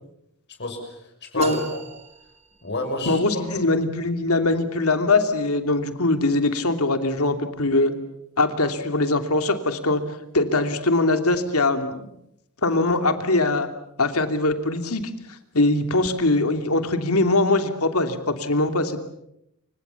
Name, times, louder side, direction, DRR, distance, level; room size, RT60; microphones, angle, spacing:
voice 1, 0.6-1.8 2.6-3.6, left 1 dB, 50° left, 4 dB, 6.8 m, -31 dB
sound 1, 1.4-3.1, right 2 dB, 30° right, 2.3 m, -36 dB
voice 2, 3.1-7.9 8.4-10.0 10.3-12.1 12.6-13.7 14.0-15.1 15.5-19.0, left 2 dB, 80° left, 7 dB, 3.0 m, -22 dB
28.5 x 26.0 x 7.2 m, 0.79 s
head